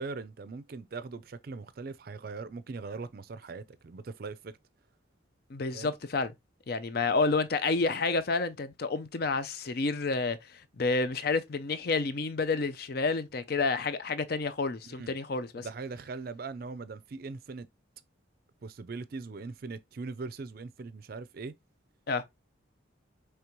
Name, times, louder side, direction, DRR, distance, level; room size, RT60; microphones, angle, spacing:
voice 1, 0.0-4.5 5.7-5.9 14.8-15.2 15.5-17.7 18.6-21.5, right 4 dB, 50° right, 0.4 m, -40 dB
voice 2, 5.5-6.3 6.7-15.7 22.1-22.2, left 4 dB, 50° left, 0.5 m, -29 dB
5.1 x 3.3 x 3.0 m
head